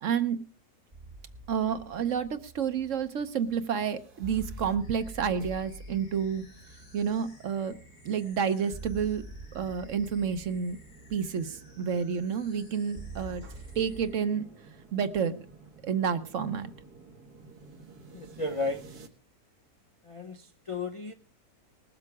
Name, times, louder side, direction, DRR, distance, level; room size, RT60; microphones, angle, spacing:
voice 1, 0.0-0.4 1.5-6.4 6.9-7.8 8.0-10.8 11.1-14.5 14.9-15.5 15.8-16.7, right 7 dB, 60° right, 11 dB, 1.1 m, -30 dB
sound 1, 0.9-14.1, right 2 dB, 30° right, 1.1 m, -47 dB
sound 2, 3.3-19.1, right 3 dB, 80° right, 1.9 m, -52 dB
sound 3, 4.8-14.4, left 2 dB, 80° left, 3.4 m, -59 dB
voice 2, 18.1-18.8 20.0-21.1, left 3 dB, 45° left, 6 dB, 0.4 m, -34 dB
20.0 x 7.6 x 4.7 m, 0.39 s
omnidirectional pair, 1.6 m